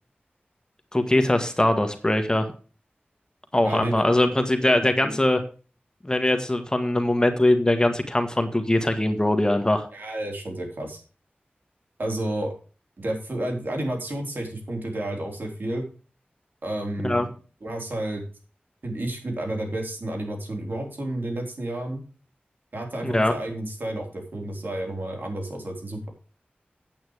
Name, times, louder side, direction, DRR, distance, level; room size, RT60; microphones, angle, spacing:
voice 1, 0.9-2.5 3.5-5.4 6.0-9.9 17.0-17.3 23.0-23.3, left 1 dB, 20° left, 6 dB, 1.4 m, -21 dB
voice 2, 3.6-4.0 4.6-5.1 9.9-11.0 12.0-12.5 13.0-15.9 16.6-17.3 17.6-18.2 18.8-22.0 22.7-26.1, right 1 dB, 65° right, 1 dB, 3.9 m, -31 dB
9.0 x 8.7 x 4.7 m, 0.36 s
wide cardioid pair, 85°, 4 cm